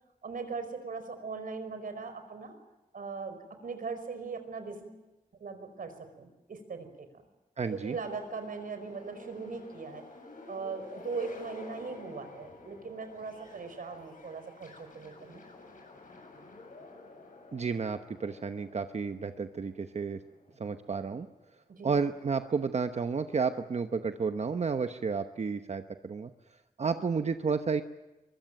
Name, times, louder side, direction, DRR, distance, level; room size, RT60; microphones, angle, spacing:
voice 1, 0.2-2.6 2.9-5.0 5.4-7.1 7.7-10.0 10.5-15.4 21.7-22.0, right 4 dB, 75° right, 8 dB, 5.0 m, -39 dB
sound 1, 7.6-21.2, left 2 dB, 65° left, 7.9 m, -51 dB
voice 2, 7.6-8.0 17.5-20.2 20.6-21.3 21.8-26.3 26.8-27.8, right 5 dB, 50° right, 8 dB, 1.0 m, -31 dB
23.0 x 23.0 x 9.1 m, 1.0 s
wide cardioid pair, 140°, 14 cm